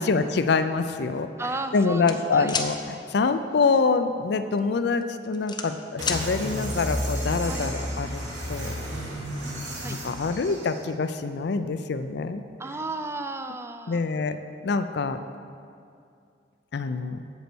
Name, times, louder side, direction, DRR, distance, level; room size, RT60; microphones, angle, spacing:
voice 1, 0.0-1.3 1.7-8.2 8.5-8.7 10.0-12.4 13.9-14.4 14.6-15.2 16.7-17.2, left 4 dB, 60° left, 10 dB, 0.4 m, -25 dB
voice 2, 1.4-2.6 7.5-7.7 9.8-10.0 12.6-14.0, right 2 dB, 15° right, 8 dB, 0.4 m, -34 dB
sound 1, 2.1-2.7 4.4-4.6 5.0-6.2, left 5 dB, 25° left, 0.6 m, -29 dB
sound 2, 6.0-10.8, equal, 75° right, 2.9 m, -32 dB
8.2 x 8.0 x 6.1 m, 2.4 s
head